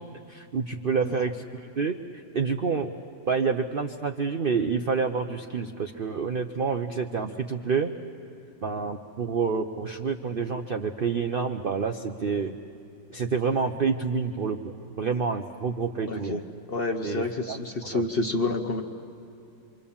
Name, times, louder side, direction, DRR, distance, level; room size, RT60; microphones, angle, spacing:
voice 1, 0.3-1.4 1.8-2.0 2.3-2.9 3.3-7.9 8.6-12.6 13.1-16.4 17.0-17.6 17.9-18.1, right 5 dB, 55° right, 5 dB, 0.6 m, -28 dB
voice 2, 16.1-16.4 16.7-18.8, left 2 dB, 40° left, 4 dB, 0.9 m, -28 dB
26.5 x 25.0 x 7.1 m, 2.7 s
omnidirectional pair, 1.9 m